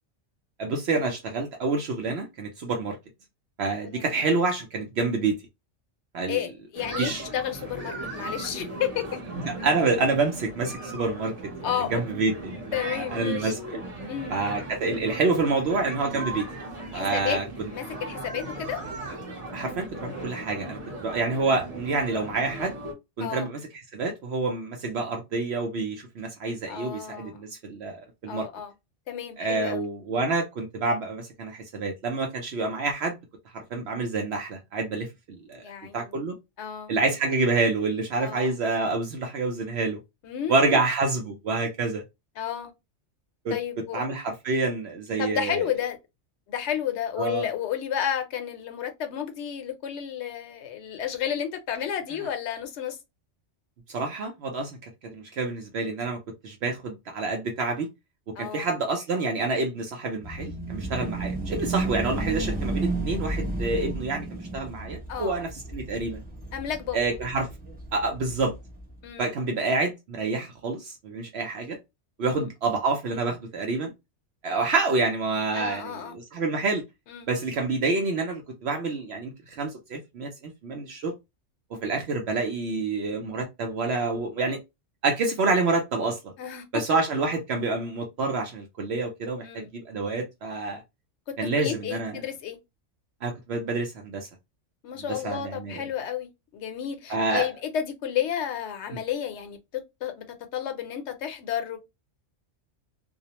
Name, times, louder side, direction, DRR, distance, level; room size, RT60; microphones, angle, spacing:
voice 1, 0.6-3.0 3.6-5.4 6.1-6.4 7.0-7.2 9.4-11.3 11.9-12.6 12.9-13.8 14.3-16.5 16.9-17.7 19.5-22.8 23.2-28.5 29.4-33.2 33.5-36.3 36.9-40.0 40.5-42.0 43.4-43.6 43.9-45.7 47.2-47.5 53.9-54.8 55.1-57.9 58.4-66.2 66.9-67.5 67.9-68.5 69.2-71.8 72.2-73.9 74.4-76.8 77.3-81.1 81.8-84.6 85.0-86.3 86.7-90.8 91.4-92.2 93.2-94.3 95.0-95.8 97.1-97.5 98.9-99.0, right 3 dB, 65° right, 0.8 m, -28 dB
voice 2, 6.3-9.2 11.6-12.0 12.7-13.5 14.1-14.4 16.9-17.4 17.7-18.8 23.2-23.5 26.7-27.4 28.3-28.7 29.1-29.8 35.5-36.1 36.6-36.9 38.2-38.5 40.2-40.8 42.4-42.7 43.5-44.0 45.2-46.0 46.5-53.0 58.4-58.7 65.1-65.4 66.5-67.2 69.0-69.3 72.2-72.4 75.5-76.1 77.1-77.3 86.4-87.0 89.4-89.7 91.3-92.6 94.8-100.2 100.5-101.8, left 9 dB, 70° left, 0.9 m, -32 dB
sound 1, 6.7-22.9, right 2 dB, 35° right, 0.8 m, -38 dB
sound 2, 60.2-69.0, right 2 dB, 15° right, 0.3 m, -33 dB
2.4 x 2.0 x 2.8 m
omnidirectional pair, 1.3 m